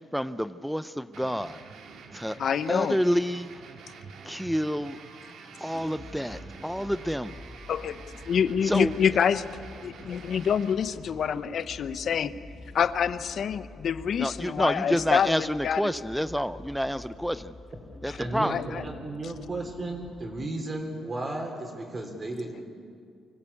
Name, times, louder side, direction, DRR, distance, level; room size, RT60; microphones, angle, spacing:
voice 1, 0.0-1.6 2.1-2.4 2.7-3.5 4.2-5.0 5.6-7.3 8.6-8.9 14.2-17.6 18.0-18.6, equal, ahead, 13 dB, 0.6 m, -28 dB
sound 1, 1.1-10.7, right 5 dB, 75° right, 2.1 m, -47 dB
voice 2, 2.4-3.0 7.7-8.0 8.3-9.4 9.8-12.3 12.7-15.8 18.1-18.2 18.5-18.8, left 7 dB, 60° left, 14 dB, 0.8 m, -26 dB
sound 2, 5.7-20.5, left 2 dB, 30° left, 2.3 m, -47 dB
voice 3, 18.1-22.6, right 2 dB, 30° right, 2 dB, 3.8 m, -34 dB
24.5 x 16.0 x 8.5 m, 2.3 s
cardioid pair, 90°, 0 cm